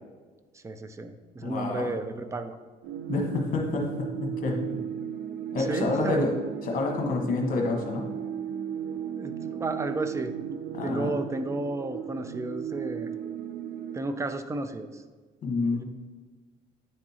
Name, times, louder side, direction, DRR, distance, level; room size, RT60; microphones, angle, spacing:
voice 1, 0.5-2.6 5.6-6.2 9.2-13.1 13.9-15.0 15.7-15.8, right 2 dB, 15° right, 9 dB, 0.4 m, -33 dB
voice 2, 1.4-1.9 3.1-4.8 5.5-6.3 6.6-8.1 10.7-11.2 15.4-15.8, left 3 dB, 55° left, 1 dB, 1.2 m, -28 dB
sound 1, 2.8-14.0, right 8 dB, 75° right, 0.6 m, -36 dB
9.7 x 3.6 x 2.8 m, 1.4 s
cardioid pair, 110°, 17 cm